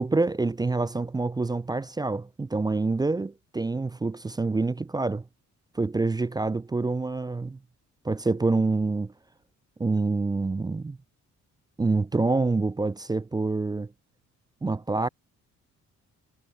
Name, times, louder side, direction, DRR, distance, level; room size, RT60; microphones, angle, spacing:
voice 1, 0.0-5.2 5.7-7.6 8.0-9.1 9.8-11.0 11.8-13.9 14.6-15.1, right 3 dB, 15° right, 0.4 m, -26 dB
cardioid pair, 90°, 30 cm